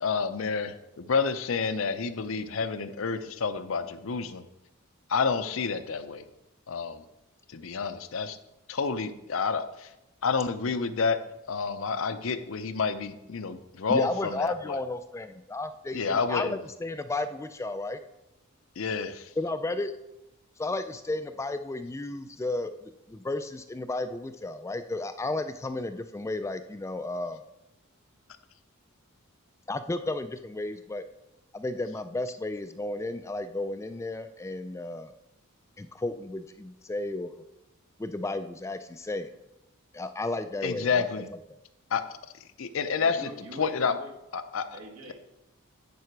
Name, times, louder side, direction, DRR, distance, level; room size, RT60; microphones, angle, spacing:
voice 1, 0.0-4.4 5.1-6.2 6.7-7.0 7.5-8.4 8.7-9.9 10.2-11.2 11.5-14.8 15.9-16.6 18.8-19.2 40.6-41.3 41.9-42.0 42.6-43.3 43.6-43.9 44.3-44.6, left 5 dB, 65° left, 10 dB, 0.6 m, -29 dB
voice 2, 13.9-18.0 19.4-19.9 20.6-27.4 29.7-31.0 31.5-35.1 35.8-37.3 38.0-39.3 39.9-41.4, left 2 dB, 15° left, 10 dB, 0.3 m, -33 dB
voice 3, 42.8-44.1 44.7-45.1, right 1 dB, 85° right, -1 dB, 1.9 m, -44 dB
9.5 x 4.9 x 4.6 m, 0.91 s
head